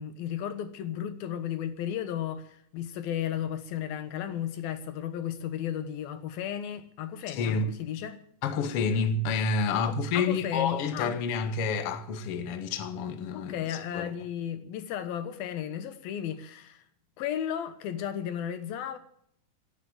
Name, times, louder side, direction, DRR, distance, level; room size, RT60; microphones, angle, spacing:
voice 1, 0.0-8.2 9.7-9.8 10.1-11.1 13.3-16.8 17.2-19.0, left 10 dB, 80° left, 3.1 m, -34 dB
voice 2, 7.3-7.7 8.4-14.1, left 4 dB, 55° left, 1.9 m, -29 dB
17.0 x 9.8 x 7.4 m
omnidirectional pair, 4.2 m